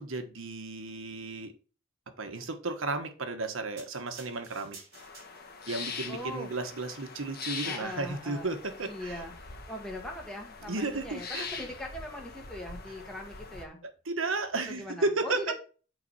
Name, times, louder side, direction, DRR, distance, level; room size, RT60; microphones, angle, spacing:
voice 1, 0.0-1.5 2.2-4.8 5.7-9.2 10.7-11.5 13.8-15.5, right 3 dB, 85° right, 7 dB, 1.3 m, -33 dB
sound 1, 3.8-5.7 6.4-6.5, right 4 dB, 55° right, 3.3 m, -52 dB
sound 2, 4.9-13.7, left 5 dB, 50° left, 1.3 m, -42 dB
voice 2, 6.1-6.5 7.6-8.5 8.8-13.8 14.7-15.5, equal, 5° left, 0 dB, 1.9 m, -40 dB
8.3 x 4.0 x 5.6 m, 0.37 s
head